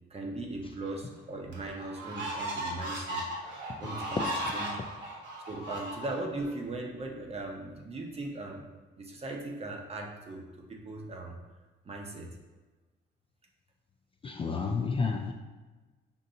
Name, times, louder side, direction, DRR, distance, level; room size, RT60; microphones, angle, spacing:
voice 1, 0.1-3.3 3.8-4.3 4.5-4.8 5.5-8.6 9.0-11.3 11.8-12.3, right 2 dB, 30° right, 1 dB, 0.7 m, -38 dB
sound 1, 0.9-1.0 1.5-6.5, right 1 dB, 65° right, 1.2 m, -36 dB
voice 2, 14.2-15.3, left 4 dB, 30° left, 2 dB, 0.3 m, -31 dB
5.3 x 2.6 x 2.7 m, 1.3 s
cardioid pair, 90°, 20 cm